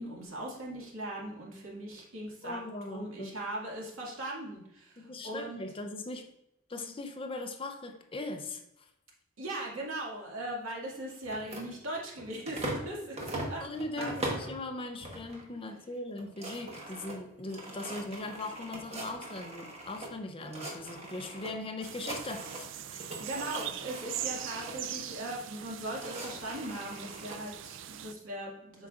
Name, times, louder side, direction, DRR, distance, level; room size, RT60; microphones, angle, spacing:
voice 1, 0.0-5.6 9.4-13.6 14.0-14.1 23.2-28.9, right 1 dB, 80° right, -3 dB, 2.1 m, -39 dB
voice 2, 2.4-3.3 5.0-6.3 6.7-8.6 13.4-23.2, left 2 dB, 25° left, 5 dB, 0.6 m, -40 dB
sound 1, 11.2-12.9 13.2-14.6 15.0-15.5 15.8-15.9 16.1-20.1 20.4-21.5 21.8-22.7 23.0-24.8 25.6-27.4, right 1 dB, 30° right, 1.2 m, -41 dB
sound 2, 21.8-28.1, right 11 dB, 60° right, 0.3 m, -41 dB
7.9 x 5.8 x 2.5 m, 0.83 s
head